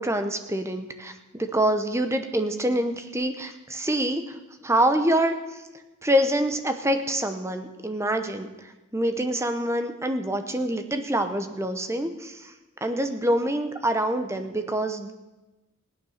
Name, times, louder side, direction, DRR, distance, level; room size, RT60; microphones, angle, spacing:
voice 1, 0.0-4.4 4.6-5.4 6.0-12.5 12.8-15.1, right 1 dB, 10° right, 7 dB, 0.8 m, -26 dB
16.5 x 9.5 x 6.5 m, 1.1 s
head